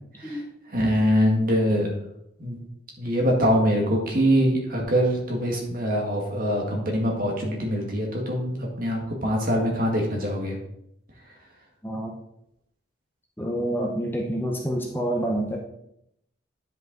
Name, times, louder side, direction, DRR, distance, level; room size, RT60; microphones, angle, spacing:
voice 1, 0.7-1.9 2.4-2.6 3.0-10.6, equal, 45° right, 0 dB, 1.8 m, -23 dB
voice 2, 11.8-12.2 13.4-15.6, right 1 dB, 10° left, 0 dB, 0.7 m, -27 dB
9.8 x 5.3 x 3.9 m, 0.77 s
head